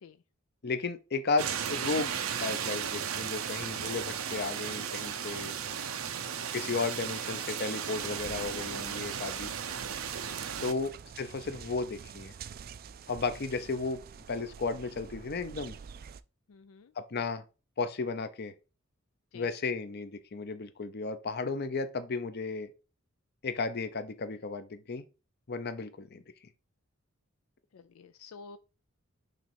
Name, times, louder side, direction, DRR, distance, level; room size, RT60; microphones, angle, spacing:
voice 1, 0.6-5.5 6.5-9.5 10.6-12.3 13.1-14.0 14.3-15.8 17.0-17.4 17.8-18.5 19.3-22.7 23.4-25.0 25.5-26.2, left 4 dB, 50° left, 0.7 m, -34 dB
sound 1, 1.4-10.7, right 8 dB, 85° right, 0.7 m, -35 dB
sound 2, 8.0-16.2, right 7 dB, 45° right, 0.3 m, -47 dB
voice 2, 16.5-16.9 19.3-19.5 27.7-28.6, left 5 dB, 80° left, 0.4 m, -51 dB
6.5 x 3.2 x 4.5 m
head